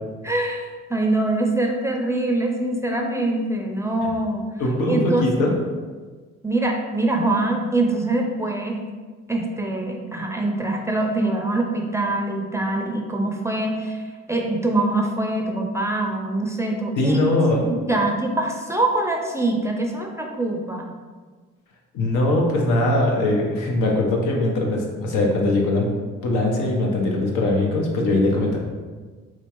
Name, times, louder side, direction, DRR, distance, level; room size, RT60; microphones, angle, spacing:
voice 1, 0.2-4.5 4.9-5.3 6.4-8.8 9.3-17.2 17.5-20.9, right 2 dB, 10° right, 1 dB, 0.4 m, -24 dB
voice 2, 4.6-5.5 17.0-17.6 17.9-18.0 21.9-25.9 26.2-28.6, left 2 dB, 85° left, 0 dB, 0.8 m, -21 dB
4.3 x 2.5 x 2.9 m, 1.4 s
cardioid pair, 90°, 30 cm